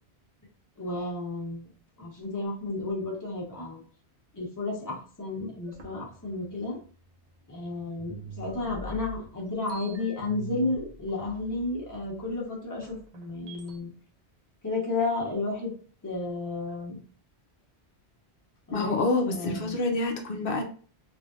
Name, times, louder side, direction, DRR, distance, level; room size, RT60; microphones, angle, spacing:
voice 1, 0.8-1.7 2.0-3.8 4.3-6.8 7.5-13.9 14.6-15.7 16.0-17.0 18.7-19.8, left 2 dB, 20° left, -4 dB, 1.0 m, -32 dB
sound 1, 5.7-7.6 8.0-13.8, equal, 45° right, 0.6 m, -45 dB
voice 2, 18.7-20.6, left 2 dB, 60° left, 4 dB, 0.8 m, -27 dB
3.2 x 2.7 x 2.4 m, 0.42 s
omnidirectional pair, 1.1 m